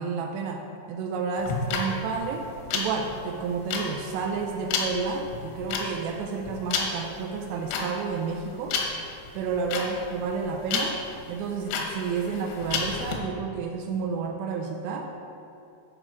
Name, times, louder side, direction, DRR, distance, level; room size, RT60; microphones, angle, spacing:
voice 1, 0.0-8.8 9.3-11.0 11.3-15.0, right 5 dB, 80° right, 2 dB, 2.5 m, -30 dB
sound 1, 1.4-13.1, left 5 dB, 80° left, 3.2 m, -31 dB
12.0 x 4.9 x 4.7 m, 2.7 s
omnidirectional pair, 5.1 m